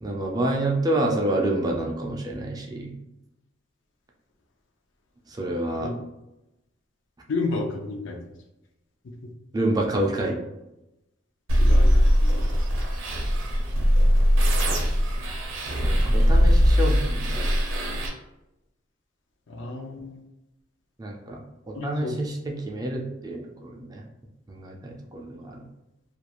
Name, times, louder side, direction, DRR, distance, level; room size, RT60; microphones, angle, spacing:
voice 1, 0.0-2.9 5.3-5.9 9.5-10.4 15.8-17.5 21.0-21.4 21.7-24.0 24.5-25.6, right 1 dB, 20° right, 0 dB, 0.4 m, -28 dB
voice 2, 7.3-8.2 11.6-12.4 19.5-20.2 21.7-22.2, left 3 dB, 70° left, 3 dB, 0.5 m, -31 dB
sound 1, 11.5-18.1, equal, 80° right, 0.6 m, -20 dB
2.4 x 2.3 x 2.9 m, 0.93 s
head